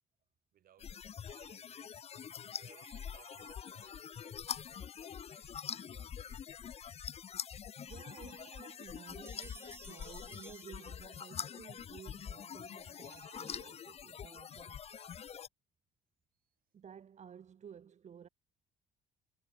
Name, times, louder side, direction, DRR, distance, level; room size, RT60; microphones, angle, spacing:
voice 1, 0.5-2.0 2.3-6.5, right 11 dB, 65° right, 5.8 m, -66 dB
sound 1, 0.8-15.5, left 8 dB, 40° left, 0.6 m, -45 dB
sound 2, 1.3-1.6 2.7-3.6 7.9-8.8 13.0-13.7 14.6-14.7 14.9-15.1, right 19 dB, 85° right, 5.8 m, -60 dB
voice 2, 7.8-14.8 16.7-18.3, right 8 dB, 45° right, 2.1 m, -54 dB
sound 3, 9.3-11.5, right 2 dB, 15° right, 1.7 m, -56 dB
supercardioid pair, 85°, 16 cm